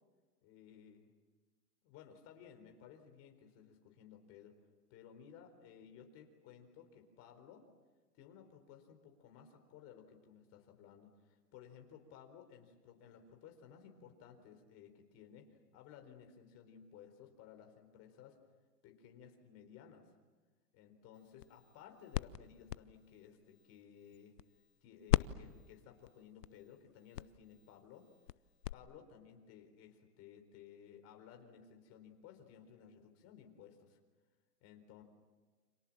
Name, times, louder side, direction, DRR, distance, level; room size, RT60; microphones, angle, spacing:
voice 1, 0.4-1.1 1.8-4.6 4.9-7.7 8.2-18.4 18.8-20.1 20.7-24.4 24.8-28.1 28.7-34.0 34.6-35.0, left 8 dB, 30° left, 5 dB, 4.3 m, -57 dB
sound 1, 21.1-24.8 25.1-28.7, left 13 dB, 80° left, 0.8 m, -40 dB
29.5 x 26.5 x 7.4 m, 1.3 s
hypercardioid pair, 145°, 47 cm